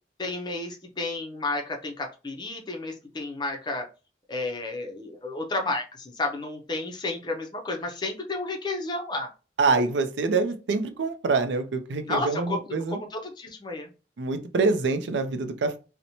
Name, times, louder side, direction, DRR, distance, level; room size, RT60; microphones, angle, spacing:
voice 1, 0.2-3.9 4.3-9.3 12.1-13.9, left 2 dB, 25° left, 2 dB, 0.4 m, -32 dB
voice 2, 9.6-13.0 14.2-15.8, right 4 dB, 75° right, 8 dB, 0.4 m, -25 dB
2.9 x 2.0 x 2.6 m, 0.33 s
head